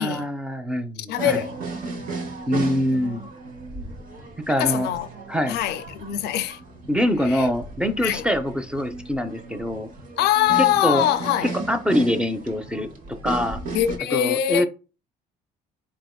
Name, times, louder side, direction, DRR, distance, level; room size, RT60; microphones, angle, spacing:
voice 1, 0.0-1.4 2.5-3.2 4.5-4.9 5.3-5.6 6.9-9.9 10.8-11.0 11.4-12.9 13.2-13.6 14.1-14.7, equal, 5° right, 0.5 m, -24 dB
voice 2, 1.1-1.6 2.9-3.3 4.5-5.1 5.5-6.6 7.2-7.5 8.0-8.3 10.2-11.5 13.7-14.7, left 12 dB, 75° left, 0.4 m, -23 dB
sound 1, 1.2-14.0, right 3 dB, 55° right, 1.0 m, -35 dB
4.3 x 3.4 x 2.3 m
cardioid pair, 110°, 17 cm